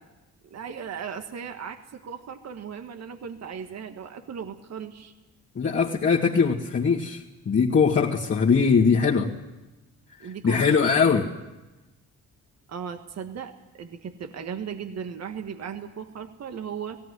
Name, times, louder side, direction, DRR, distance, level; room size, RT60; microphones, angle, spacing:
voice 1, 0.4-5.1 10.2-10.8 11.0-11.2 12.7-13.5 13.8-17.0, right 7 dB, 60° right, 7 dB, 1.6 m, -37 dB
voice 2, 5.6-9.3 10.4-11.3, left 5 dB, 40° left, -5 dB, 2.0 m, -21 dB
17.5 x 17.0 x 9.7 m, 1.1 s
cardioid pair, 90°, 30 cm